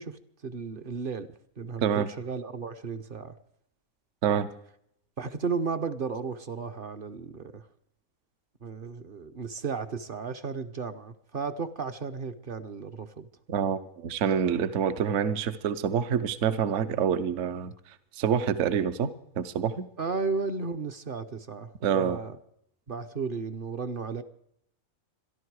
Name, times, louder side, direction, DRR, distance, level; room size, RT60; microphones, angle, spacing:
voice 1, 0.0-3.3 5.2-7.6 8.6-13.3 20.0-22.4 22.9-24.2, right 5 dB, 45° right, 9 dB, 0.8 m, -34 dB
voice 2, 13.5-17.7 18.2-19.9 21.8-22.2, right 8 dB, 60° right, 12 dB, 1.1 m, -27 dB
26.5 x 11.5 x 4.7 m, 0.72 s
omnidirectional pair, 1.5 m